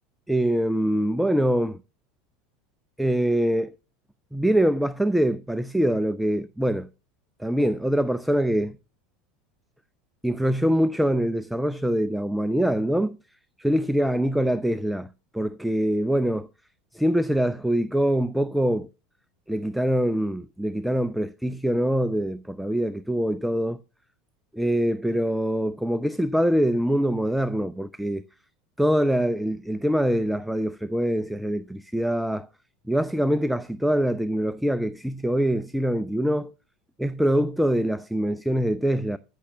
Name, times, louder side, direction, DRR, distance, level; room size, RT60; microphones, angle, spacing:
voice 1, 0.3-1.8 3.0-3.7 4.3-6.9 7.4-8.8 10.2-13.2 13.6-15.1 15.3-16.5 16.9-18.9 19.5-23.8 24.5-28.2 28.8-32.5 32.9-36.5 37.0-39.2, equal, ahead, 0.6 m, -24 dB
14.0 x 6.6 x 6.1 m
hypercardioid pair, 80°, 0 cm